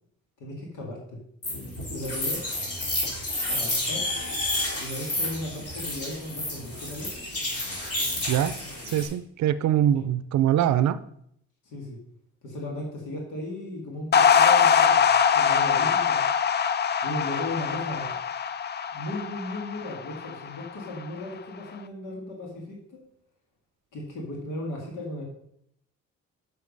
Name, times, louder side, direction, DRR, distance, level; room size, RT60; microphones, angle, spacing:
voice 1, 0.4-1.2 1.9-2.4 3.5-4.1 4.8-7.1 9.9-10.0 11.6-12.0 12.4-15.1 15.3-16.2 17.0-18.1 18.9-23.0 23.9-25.2, left 1 dB, 85° left, -1 dB, 2.4 m, -36 dB
sound 1, 1.4-9.1, left 1 dB, 50° left, 3.7 m, -30 dB
voice 2, 8.9-11.0, right 11 dB, 65° right, 14 dB, 0.5 m, -23 dB
sound 2, 14.1-20.6, left 7 dB, 35° left, 0.5 m, -22 dB
7.2 x 6.5 x 5.4 m, 0.71 s
cardioid pair, 90°, 30 cm